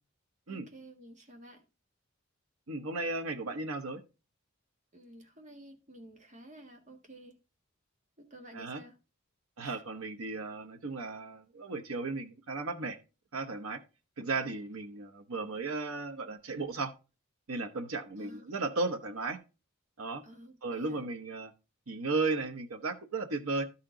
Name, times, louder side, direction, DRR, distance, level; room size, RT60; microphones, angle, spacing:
voice 1, 0.5-1.6 4.9-7.4 8.2-9.0 9.6-9.8 18.2-18.5 20.2-21.0, right 1 dB, 35° right, 1.7 m, -52 dB
voice 2, 2.7-4.0 8.5-8.8 9.6-13.0 13.3-13.8 14.2-16.9 17.5-19.4 20.0-20.2 20.6-21.5 21.9-23.6, right 3 dB, 90° right, 0.9 m, -35 dB
12.5 x 4.3 x 3.8 m
head